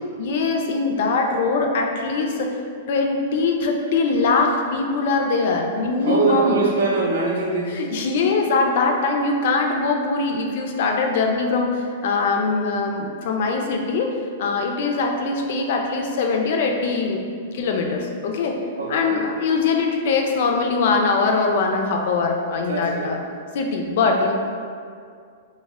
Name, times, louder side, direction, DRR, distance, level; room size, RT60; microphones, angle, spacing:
voice 1, 0.2-2.6 2.9-6.6 7.7-14.1 14.4-18.6 18.9-23.2 23.5-24.3, left 4 dB, 65° left, 2 dB, 0.3 m, -22 dB
voice 2, 6.0-7.8 18.8-19.2 22.6-23.1, right 4 dB, 80° right, -2 dB, 0.5 m, -23 dB
2.1 x 2.1 x 3.4 m, 2.2 s
hypercardioid pair, 125°, 0 cm